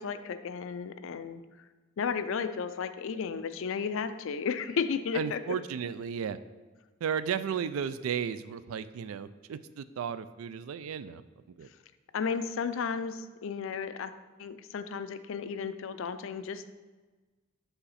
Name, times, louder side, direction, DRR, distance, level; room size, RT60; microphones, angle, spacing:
voice 1, 0.0-1.4 2.0-5.4 12.1-14.1 14.4-16.7, left 6 dB, 70° left, 11 dB, 0.4 m, -33 dB
voice 2, 5.1-6.4 7.0-11.2 11.5-11.7, right 7 dB, 80° right, 14 dB, 0.3 m, -34 dB
5.7 x 5.7 x 4.1 m, 1.3 s
head